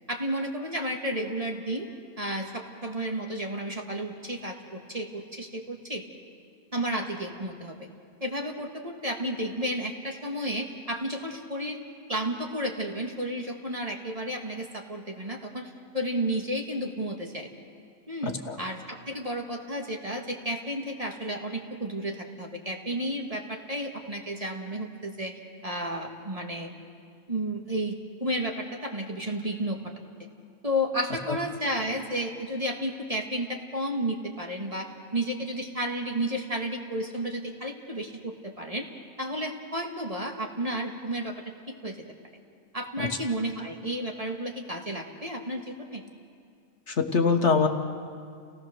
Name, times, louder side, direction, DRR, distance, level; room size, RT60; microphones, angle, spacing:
voice 1, 0.1-1.9 2.2-6.0 6.7-7.9 8.2-11.8 12.1-17.5 18.1-25.3 25.6-26.7 27.3-29.8 30.6-38.9 39.2-42.0 42.7-46.0, equal, 25° right, 2 dB, 1.6 m, -32 dB
voice 2, 18.2-18.6 31.3-31.4 43.0-43.1 46.9-47.7, left 5 dB, 55° left, 4 dB, 1.5 m, -24 dB
30.0 x 17.5 x 6.5 m, 2.2 s
omnidirectional pair, 1.5 m